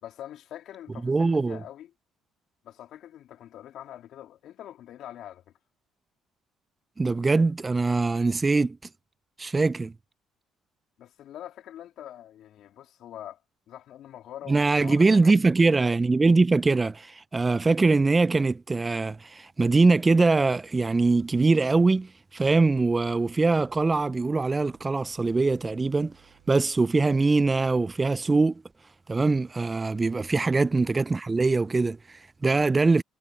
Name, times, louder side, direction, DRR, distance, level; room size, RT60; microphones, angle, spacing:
voice 1, 0.0-1.9 2.6-5.4 11.0-13.4 13.7-15.4 32.4-32.8, left 11 dB, 65° left, 3.4 m, -44 dB
voice 2, 1.0-1.6 7.0-8.8 9.4-9.9 14.5-26.1 26.5-28.6 29.1-33.0, right 3 dB, 25° right, 0.4 m, -22 dB
sound 1, 22.4-27.9, right 25 dB, 85° right, 2.9 m, -61 dB
hypercardioid pair, 60°, 0 cm